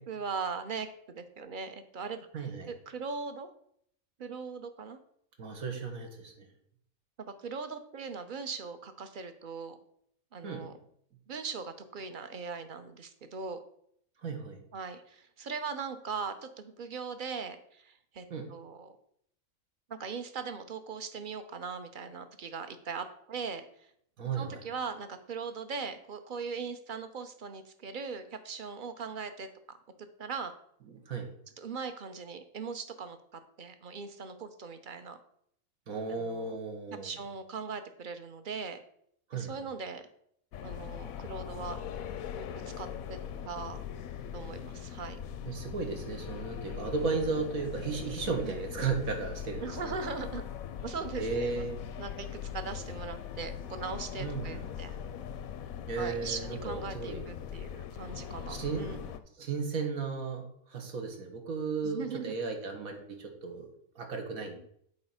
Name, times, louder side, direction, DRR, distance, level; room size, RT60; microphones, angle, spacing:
voice 1, 0.1-2.3 2.7-3.5 4.2-5.0 7.3-9.8 10.3-10.7 11.3-13.6 14.7-19.0 19.9-23.6 24.4-29.8 30.2-30.5 31.6-35.2 36.1-36.6 37.0-38.8 39.3-40.0 40.6-41.8 42.4-42.5 42.8-43.2 43.4-43.8 44.3-45.2 48.4-48.6 49.6-50.4 50.8-51.6 52.0-52.3 52.5-54.9 56.0-59.0 61.8-62.3, right 5 dB, 45° right, 9 dB, 0.7 m, -40 dB
voice 2, 2.3-2.7 5.4-6.4 10.4-10.6 14.2-14.6 18.3-18.5 24.2-24.6 30.9-31.3 35.9-37.1 39.3-39.5 45.5-49.9 51.2-51.8 54.2-54.7 55.9-57.2 58.5-59.0 59.4-63.7 63.9-64.6, right 4 dB, 80° right, 4 dB, 1.7 m, -35 dB
sound 1, 40.5-59.2, left 8 dB, 80° left, 1.1 m, -41 dB
7.9 x 4.3 x 5.6 m, 0.68 s
omnidirectional pair, 1.4 m